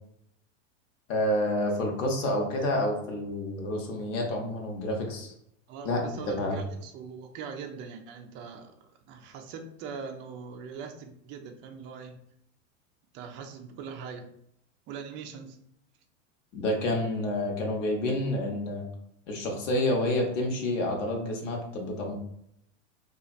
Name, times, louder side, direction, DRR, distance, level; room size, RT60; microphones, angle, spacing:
voice 1, 1.1-5.3 5.8-6.6 16.5-18.8 19.3-22.1, left 1 dB, 75° left, 1 dB, 0.9 m, -29 dB
voice 2, 5.7-8.7 9.1-12.2 13.1-14.3 14.9-15.6, right 6 dB, 30° right, 5 dB, 0.4 m, -41 dB
2.8 x 2.4 x 2.4 m, 0.74 s
hypercardioid pair, 110°, 38 cm